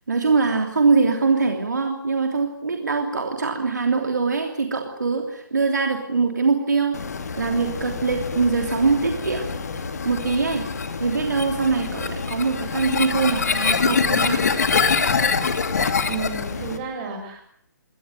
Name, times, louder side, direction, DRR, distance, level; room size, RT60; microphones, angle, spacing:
voice 1, 0.1-7.0 7.4-9.5 9.8-10.6 11.0-14.4, right 4 dB, 60° right, 4 dB, 3.1 m, -23 dB
sound 1, 6.9-16.8, left 5 dB, 50° left, 2.7 m, -25 dB
voice 2, 16.1-17.4, right 5 dB, 25° right, 4 dB, 7.1 m, -31 dB
23.0 x 19.0 x 9.2 m, 0.70 s
figure-of-eight pair, 135°, 11 cm